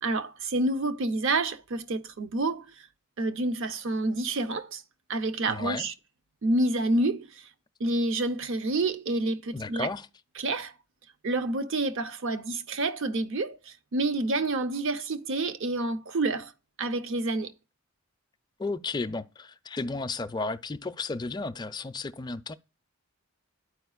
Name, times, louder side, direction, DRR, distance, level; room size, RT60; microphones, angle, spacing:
voice 1, 0.0-2.7 3.2-4.8 5.1-5.9 6.4-7.3 7.8-9.9 10.4-10.7 11.2-16.5 16.8-17.5, right 2 dB, 60° right, 0.6 m, -28 dB
voice 2, 5.5-5.9 9.5-10.1 18.6-22.5, left 3 dB, 20° left, 0.4 m, -33 dB
12.0 x 4.9 x 2.3 m
head